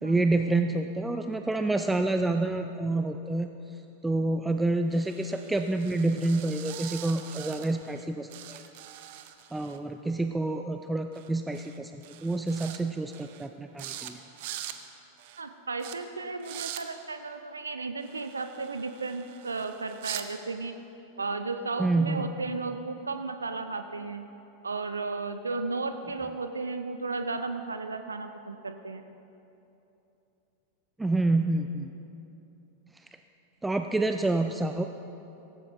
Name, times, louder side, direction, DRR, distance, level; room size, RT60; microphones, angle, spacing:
voice 1, 0.0-3.5 4.0-8.6 9.5-14.2 21.8-22.3 31.0-31.9 33.6-34.8, right 2 dB, 5° right, 6 dB, 0.5 m, -28 dB
sound 1, 4.9-8.0 8.3-9.8 11.1-11.3 11.5-11.8 12.0-12.8 13.1-13.5 13.8-14.1 14.4-14.8 15.2-15.4 15.8-16.0 16.4-16.8 18.0-20.3, right 13 dB, 50° right, 0.8 m, -42 dB
voice 2, 15.4-20.8 21.2-24.3 24.6-29.0, right 3 dB, 75° right, 9 dB, 0.5 m, -34 dB
17.0 x 15.0 x 3.4 m, 2.9 s
figure-of-eight pair, 90°, 0 cm